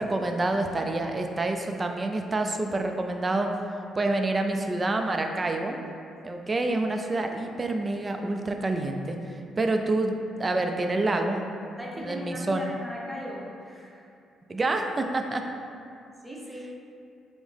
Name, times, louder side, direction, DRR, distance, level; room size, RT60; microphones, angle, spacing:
voice 1, 0.0-3.5 3.9-5.8 6.2-9.2 9.6-11.4 12.0-12.6 14.5-15.4, right 2 dB, 25° right, 4 dB, 0.3 m, -27 dB
voice 2, 11.8-14.0 16.2-16.7, equal, 5° right, -3 dB, 0.7 m, -38 dB
5.3 x 2.0 x 3.3 m, 2.5 s
cardioid pair, 90°, 0 cm